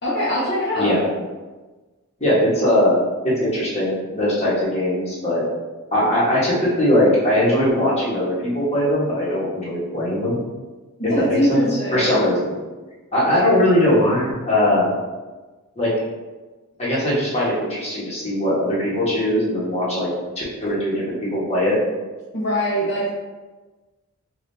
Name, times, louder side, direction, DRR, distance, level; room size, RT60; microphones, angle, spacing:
voice 1, 0.0-1.0 11.1-12.2 22.3-23.1, equal, 50° left, -9 dB, 1.0 m, -22 dB
voice 2, 2.2-3.0 3.2-5.5 5.9-10.4 11.2-11.6 11.9-12.6 13.1-14.9 15.7-15.9 16.8-20.1 20.3-21.7, left 1 dB, 30° left, -8 dB, 1.4 m, -20 dB
5.1 x 2.7 x 2.8 m, 1.3 s
head